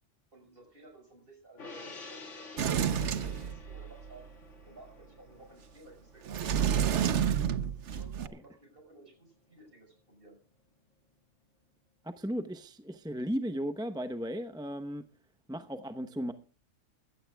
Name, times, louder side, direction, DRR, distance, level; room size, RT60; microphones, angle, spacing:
voice 1, 0.3-4.3 4.6-6.7 7.4-10.4, right 2 dB, 45° right, 5.8 m, -55 dB
Gong, 1.6-8.2 8.5-8.7, left 3 dB, 70° left, 2.5 m, -50 dB
Sliding door, 2.6-4.1 6.3-8.3, right 8 dB, 65° right, 1.1 m, -29 dB
voice 2, 12.2-15.0 15.5-16.3, equal, 5° right, 0.7 m, -35 dB
23.0 x 15.5 x 2.3 m
omnidirectional pair, 1.3 m